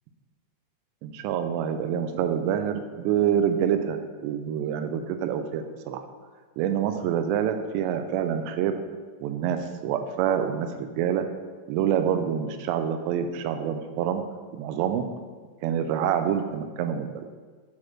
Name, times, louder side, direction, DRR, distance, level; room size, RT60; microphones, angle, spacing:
voice 1, 1.0-6.0 6.6-8.8 9.2-11.3 11.7-14.2 14.5-15.1 15.6-17.3, right 9 dB, 85° right, 8 dB, 2.8 m, -26 dB
9.7 x 4.3 x 4.5 m, 1.5 s
omnidirectional pair, 5.0 m